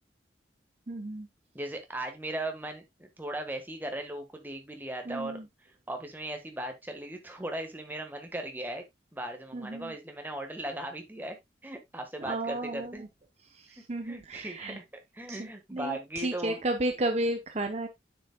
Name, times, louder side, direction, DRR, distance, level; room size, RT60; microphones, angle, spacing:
voice 1, 0.9-1.3 5.1-5.4 9.5-9.9 12.2-12.9 13.7-14.8 15.3-17.9, right 1 dB, 35° right, 0.8 m, -33 dB
voice 2, 1.5-5.4 5.9-8.8 9.1-11.4 11.6-13.0 14.0-14.8 15.1-16.6, right 1 dB, 10° right, 1.4 m, -38 dB
9.0 x 6.9 x 2.2 m
head